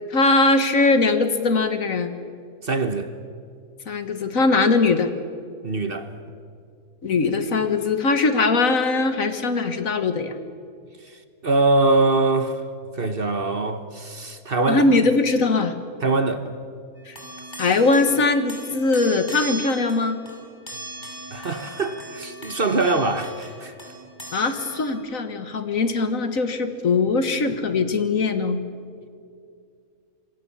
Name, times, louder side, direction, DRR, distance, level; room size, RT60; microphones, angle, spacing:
voice 1, 0.1-2.1 3.9-5.1 7.0-10.3 14.7-15.7 17.1-17.2 17.6-20.2 24.3-28.6, left 3 dB, 60° left, 1.8 m, -21 dB
voice 2, 2.6-3.1 5.6-6.1 11.0-12.6 12.9-14.8 16.0-16.5 21.3-23.8, right 3 dB, 40° right, 1.3 m, -23 dB
sound 1, 17.0-18.2 18.5-25.0, right 1 dB, 30° left, 5.9 m, -38 dB
27.0 x 23.5 x 7.1 m
omnidirectional pair, 1.6 m